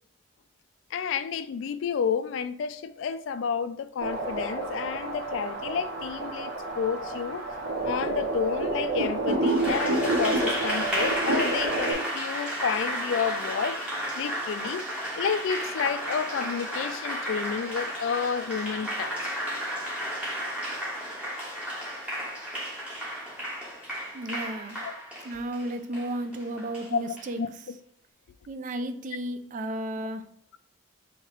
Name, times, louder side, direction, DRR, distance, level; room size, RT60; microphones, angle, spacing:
voice 1, 0.9-7.4 7.8-13.8 14.2-14.8 15.1-19.3 24.8-24.9 26.9-27.0 27.4-27.5, left 6 dB, 65° left, 0.3 m, -30 dB
sound 1, 4.0-11.9, right 2 dB, 55° right, 1.0 m, -29 dB
Applause, 9.5-27.3, equal, 5° right, 1.0 m, -33 dB
voice 2, 24.1-24.8 25.2-27.4 28.5-30.3, right 1 dB, 40° right, 0.3 m, -33 dB
3.1 x 2.8 x 4.4 m
head